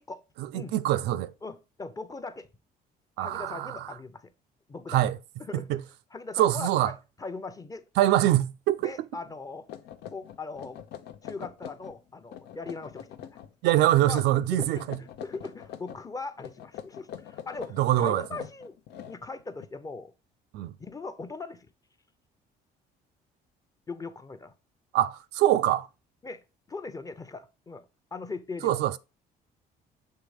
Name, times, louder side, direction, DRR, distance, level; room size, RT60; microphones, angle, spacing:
voice 1, 0.4-1.3 3.2-3.8 4.9-5.2 5.7-5.8 6.4-6.9 8.0-8.9 13.6-15.0 17.8-18.2 20.5-20.7 24.9-25.9 28.6-29.0, right 13 dB, 85° right, 0.4 m, -24 dB
voice 2, 1.4-2.5 3.2-4.3 4.7-5.0 5.4-5.7 6.1-7.9 8.8-9.7 10.1-10.8 11.2-13.3 14.0-14.2 14.5-18.8 19.1-20.1 20.8-21.7 23.9-24.5 26.2-27.8 28.1-28.8, left 3 dB, 20° left, 0.7 m, -40 dB
sound 1, 9.2-9.3 9.7-12.0 12.3-13.5 14.1-16.0 16.4-19.7, left 10 dB, 75° left, 0.7 m, -43 dB
6.7 x 3.4 x 4.9 m
cardioid pair, 110°, 17 cm